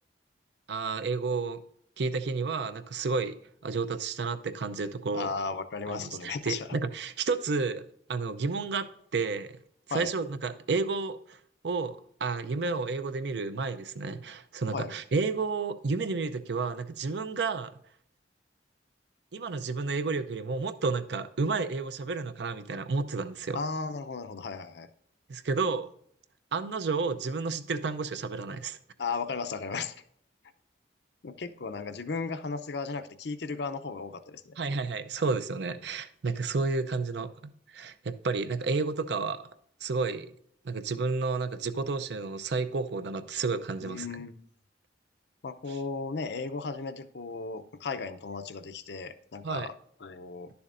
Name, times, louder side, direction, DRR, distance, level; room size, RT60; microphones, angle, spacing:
voice 1, 0.7-1.6 2.0-3.4 3.6-5.3 5.9-7.8 8.1-8.9 9.1-9.5 9.9-11.4 11.6-17.7 19.3-23.6 25.3-25.9 26.5-28.8 34.6-39.5 39.8-40.3 40.6-44.1 49.4-49.7, right 4 dB, 70° right, 0.6 m, -31 dB
voice 2, 5.1-6.7 9.9-10.1 14.7-14.9 23.5-24.9 29.0-30.0 31.2-34.5 43.8-44.3 45.4-49.7 50.0-50.5, left 4 dB, 65° left, 0.6 m, -35 dB
11.0 x 7.0 x 2.5 m
head